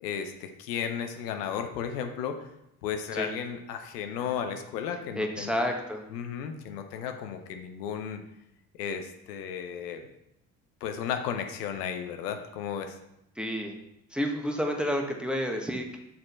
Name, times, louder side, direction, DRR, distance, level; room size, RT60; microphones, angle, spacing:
voice 1, 0.0-2.5 2.8-5.7 6.1-8.2 8.7-10.0 10.8-13.0, left 8 dB, 85° left, 6 dB, 0.7 m, -34 dB
voice 2, 5.1-6.0 13.4-13.7 14.1-16.0, equal, ahead, 2 dB, 1.1 m, -30 dB
6.4 x 4.3 x 4.2 m, 0.83 s
hypercardioid pair, 55°, 47 cm